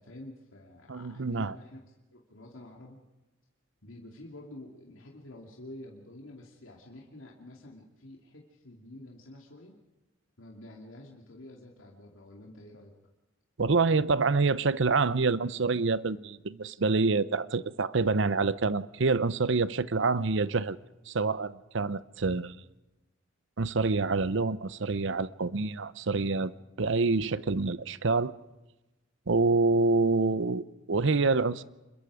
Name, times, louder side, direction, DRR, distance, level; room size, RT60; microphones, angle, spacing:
voice 1, 0.0-1.8 2.1-3.0 3.8-9.8 10.4-12.9, left 1 dB, 80° left, 2.7 m, -48 dB
voice 2, 0.9-1.5 13.6-20.8 21.1-22.6 23.6-28.3 29.3-31.6, right 3 dB, 65° right, 0.8 m, -27 dB
27.0 x 22.0 x 5.0 m
head